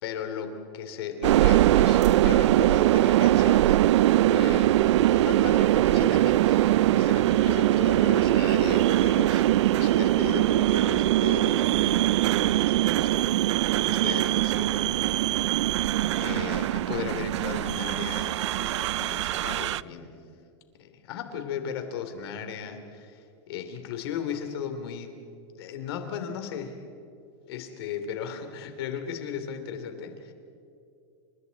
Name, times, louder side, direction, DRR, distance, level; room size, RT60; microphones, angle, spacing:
voice 1, 0.0-3.8 4.1-4.8 5.1-9.4 9.7-13.4 13.8-15.5 16.1-20.1 20.8-25.2 25.6-26.9 27.5-30.3, left 8 dB, 60° left, 7 dB, 3.2 m, -36 dB
sound 1, 1.2-19.8, right 14 dB, 90° right, 0.5 m, -22 dB
29.5 x 28.0 x 4.2 m, 2.5 s
supercardioid pair, 175°, 14 cm